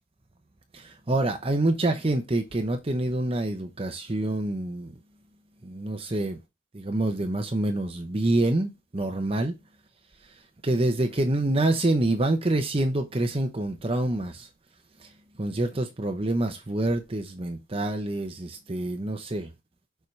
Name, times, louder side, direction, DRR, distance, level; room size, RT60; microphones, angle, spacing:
voice 1, 0.7-4.9 5.6-6.4 6.7-9.5 10.6-14.5 15.0-15.1 15.4-19.5, right 2 dB, 30° right, 0.7 m, -26 dB
6.9 x 4.5 x 3.3 m
head